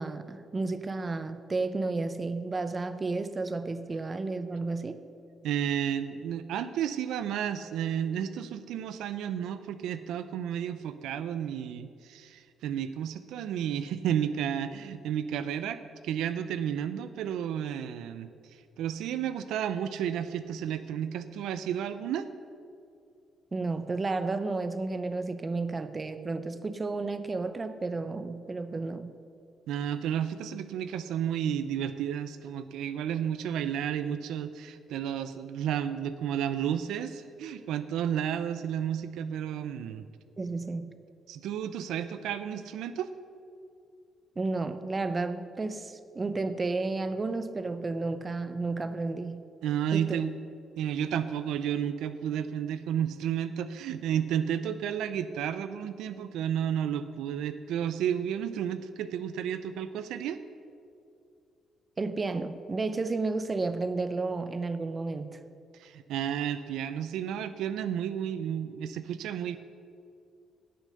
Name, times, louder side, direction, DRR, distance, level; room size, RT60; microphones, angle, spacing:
voice 1, 0.0-5.0 23.5-29.1 40.4-40.9 44.4-49.4 49.9-50.2 62.0-65.4, right 3 dB, 30° right, 11 dB, 0.7 m, -32 dB
voice 2, 5.4-22.3 29.7-40.1 41.3-43.1 49.6-50.3 50.8-60.4 65.7-69.6, right 9 dB, 85° right, 12 dB, 0.5 m, -32 dB
17.0 x 6.5 x 6.4 m, 2.4 s
cardioid pair, 90°, 0 cm